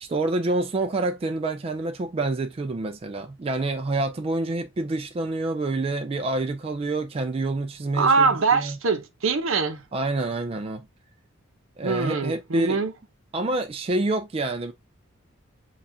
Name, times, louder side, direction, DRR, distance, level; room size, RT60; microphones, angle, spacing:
voice 1, 0.0-8.7 9.9-10.9 11.8-12.8 13.3-14.7, right 2 dB, 30° right, 0.3 m, -27 dB
voice 2, 7.9-9.8 11.8-12.9, right 4 dB, 70° right, 0.7 m, -23 dB
7.0 x 2.4 x 2.7 m
head